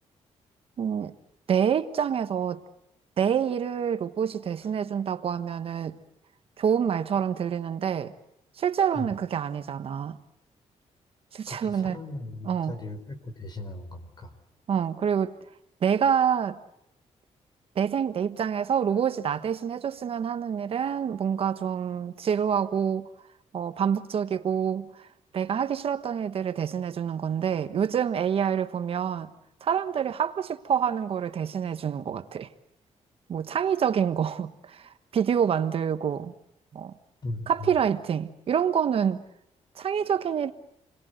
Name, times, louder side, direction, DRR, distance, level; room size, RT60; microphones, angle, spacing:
voice 1, 0.8-1.1 1.5-2.6 3.2-6.0 6.6-8.1 8.6-10.2 11.3-12.0 12.4-12.8 14.7-15.3 15.8-16.6 17.7-23.1 23.5-25.1 25.3-29.3 29.6-32.5 33.3-36.3 36.7-36.9 37.5-39.2 39.7-40.5, right 8 dB, 55° right, 1.3 m, -27 dB
voice 2, 11.5-14.3 37.2-37.7, left 2 dB, 35° left, 4.4 m, -38 dB
29.0 x 22.5 x 8.0 m
cardioid pair, 145°, 12 cm